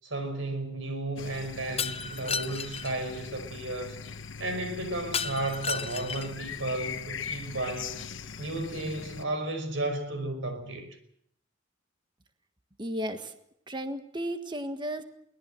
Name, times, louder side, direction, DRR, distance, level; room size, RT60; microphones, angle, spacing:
voice 1, 0.0-4.0 4.4-8.0 8.4-10.9, right 2 dB, 80° right, 5.4 m, -33 dB
sound 1, 1.2-9.2, left 6 dB, 75° left, 1.2 m, -41 dB
Shatter, 1.8-2.9 5.1-6.4, left 5 dB, 30° left, 0.8 m, -33 dB
voice 2, 12.8-13.3 13.7-15.0, right 1 dB, 25° right, 1.6 m, -34 dB
23.0 x 18.5 x 7.8 m
head